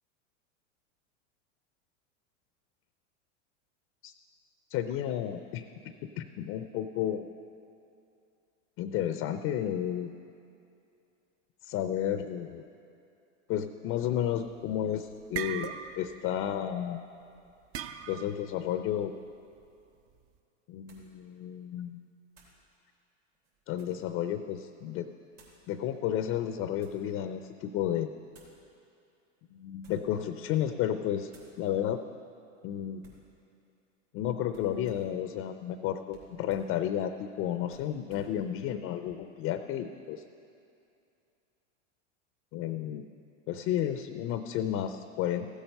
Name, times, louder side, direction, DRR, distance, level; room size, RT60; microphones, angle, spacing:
voice 1, 4.7-7.3 8.8-10.1 11.6-12.6 13.5-17.1 18.1-19.1 20.7-22.0 23.7-25.1 25.7-28.1 29.5-31.3 31.6-32.0 32.6-33.0 34.1-40.2 42.5-43.1 43.5-45.5, left 10 dB, 35° left, 10 dB, 0.5 m, -32 dB
sound 1, 14.5-14.8 15.1-16.2 16.5-16.7 17.7-18.4, right 8 dB, 40° right, 0.6 m, -38 dB
sound 2, 19.7-19.8 20.9-21.2 22.3-22.6 23.3-24.1 25.3-25.6 26.4-27.1 28.3-28.6 29.7-30.2 30.6-30.9 31.3-31.6 33.0-33.3 34.5-35.2 36.1-36.8 37.7-38.4, right 3 dB, 85° right, 3.4 m, -59 dB
15.0 x 8.1 x 5.4 m, 2.6 s
hypercardioid pair, 105°, 37 cm